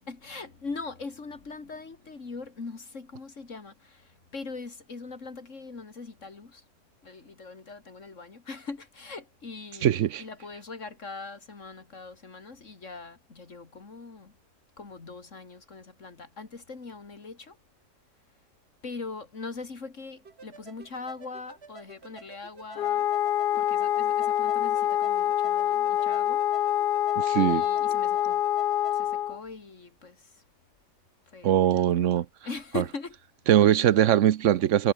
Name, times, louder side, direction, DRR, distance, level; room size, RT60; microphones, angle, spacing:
voice 1, 0.0-6.6 7.0-14.3 14.8-17.6 18.8-23.1 23.5-26.7 27.4-28.4 28.9-30.4 31.3-32.0 32.4-33.2, left 4 dB, 75° left, 2.9 m, -41 dB
voice 2, 9.8-10.2 27.2-27.6 31.4-32.3 32.8-32.9 33.5-34.9, right 11 dB, 75° right, 1.1 m, -21 dB
sound 1, 20.2-29.0, right 5 dB, 55° right, 2.0 m, -51 dB
Wind instrument woodwind instrument, 22.8-29.4, left 12 dB, 60° left, 0.6 m, -26 dB
omnidirectional pair, 1.3 m